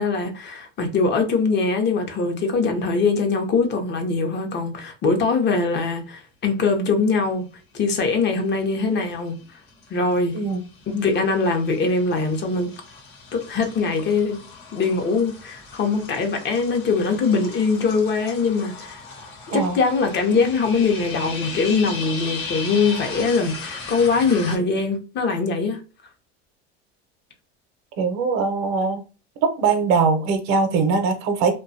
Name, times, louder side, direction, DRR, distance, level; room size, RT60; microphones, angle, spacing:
voice 1, 0.0-7.5 7.7-9.3 9.9-10.4 10.9-12.7 13.3-14.4 14.7-19.0 19.5-25.8, left 4 dB, 35° left, 0.7 m, -22 dB
sound 1, 8.2-8.7 9.1-24.6, left 4 dB, 75° left, 1.0 m, -37 dB
voice 2, 28.0-29.0 29.4-31.6, right 4 dB, 60° right, 0.7 m, -21 dB
2.6 x 2.2 x 2.6 m
supercardioid pair, 95°, 31 cm